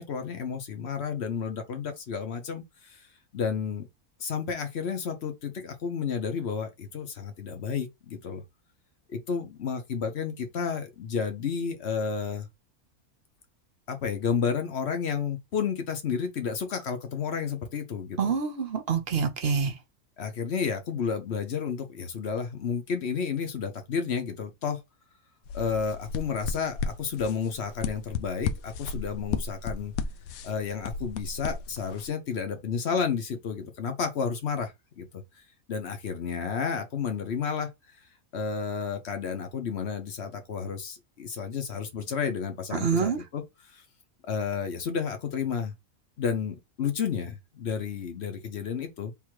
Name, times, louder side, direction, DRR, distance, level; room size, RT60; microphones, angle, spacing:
voice 1, 0.0-3.0 3.3-3.9 4.2-8.4 9.1-12.5 13.9-18.3 20.2-24.8 25.5-29.9 30.4-35.2 35.7-37.7 38.3-43.4 43.7-43.8 44.3-45.7 46.2-49.1, left 6 dB, 50° left, 1.1 m, -31 dB
voice 2, 18.2-19.7 42.7-43.2, right 6 dB, 50° right, 1.0 m, -26 dB
sound 1, 25.5-32.1, left 5 dB, 75° left, 1.0 m, -35 dB
3.6 x 2.8 x 4.6 m
omnidirectional pair, 1.5 m